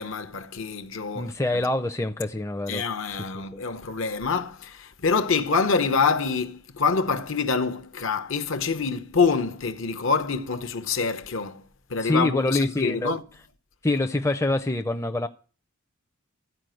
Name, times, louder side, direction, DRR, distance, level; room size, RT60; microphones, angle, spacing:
voice 1, 0.0-1.6 2.7-11.6 11.9-13.2, left 5 dB, 65° left, 0.9 m, -26 dB
voice 2, 1.1-2.8 3.2-3.6 12.0-13.1 13.8-15.3, left 2 dB, 15° left, 0.5 m, -26 dB
14.0 x 5.0 x 7.7 m
head